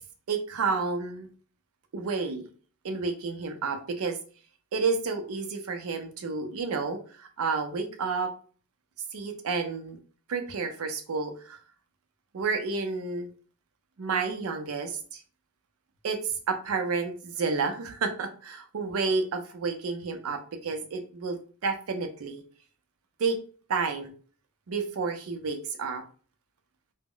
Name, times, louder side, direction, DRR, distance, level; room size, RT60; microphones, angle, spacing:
voice 1, 0.3-1.3 1.9-2.5 2.8-4.2 4.7-8.3 9.1-10.0 10.3-11.6 12.3-13.3 14.0-15.2 16.0-16.2 16.5-22.4 23.2-23.4 23.7-24.1 24.7-26.0, right 4 dB, 85° right, 5 dB, 0.5 m, -30 dB
2.1 x 2.0 x 3.7 m, 0.40 s
head